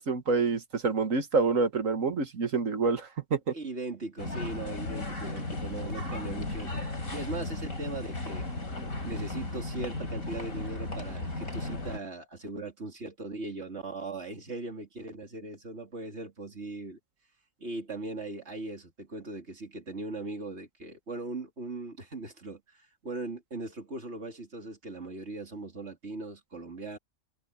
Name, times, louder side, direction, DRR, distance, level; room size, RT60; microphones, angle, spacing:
voice 1, 0.0-3.5, right 4 dB, 75° right, 2.0 m, -27 dB
voice 2, 3.5-8.5 9.0-17.0 17.6-27.0, right 3 dB, 55° right, 3.3 m, -39 dB
sound 1, 4.2-12.0, left 2 dB, 90° left, 4.5 m, -35 dB
omnidirectional pair, 1.4 m